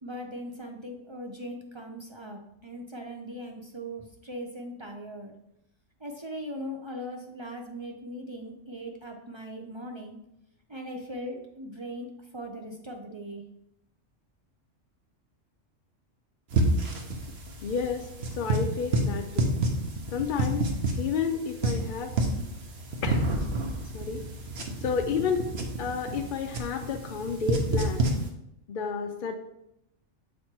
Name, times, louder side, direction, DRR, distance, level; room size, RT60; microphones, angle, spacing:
voice 1, 0.0-5.3 6.0-10.2 10.7-12.1 12.3-13.4, equal, 40° right, 2 dB, 0.4 m, -39 dB
sound 1, 16.5-28.3, right 2 dB, 55° right, 1.1 m, -29 dB
voice 2, 17.6-19.5 20.1-20.7 21.0-22.2 23.0-23.4 23.9-24.2 24.8-25.4 25.8-28.1 28.7-29.4, left 6 dB, 65° left, 4 dB, 0.5 m, -31 dB
7.6 x 3.2 x 4.3 m, 0.81 s
omnidirectional pair, 1.3 m